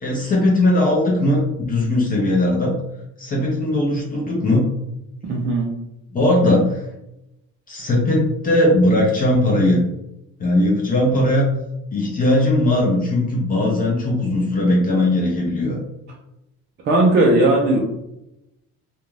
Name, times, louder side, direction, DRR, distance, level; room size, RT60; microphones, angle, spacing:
voice 1, 0.0-2.7 3.2-4.7 6.1-6.8 7.7-9.8 10.4-11.5 11.9-15.8, left 1 dB, 30° left, -3 dB, 0.5 m, -18 dB
voice 2, 5.2-5.7 16.8-17.8, right 2 dB, 35° right, -2 dB, 0.4 m, -17 dB
2.5 x 2.3 x 3.1 m, 0.87 s
cardioid pair, 175°, 31 cm